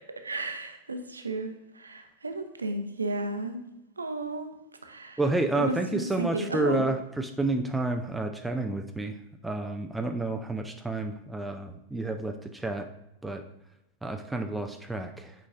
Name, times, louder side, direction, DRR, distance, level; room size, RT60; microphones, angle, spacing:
voice 1, 0.2-3.6 4.0-4.5 4.8-5.2 5.6-6.9, right 2 dB, 75° right, 6 dB, 0.7 m, -33 dB
voice 2, 5.2-9.1 9.4-12.9 13.2-13.4 14.0-15.3, right 2 dB, 5° right, 5 dB, 0.4 m, -30 dB
8.3 x 5.0 x 2.5 m, 0.92 s
figure-of-eight pair, 90°, 0 cm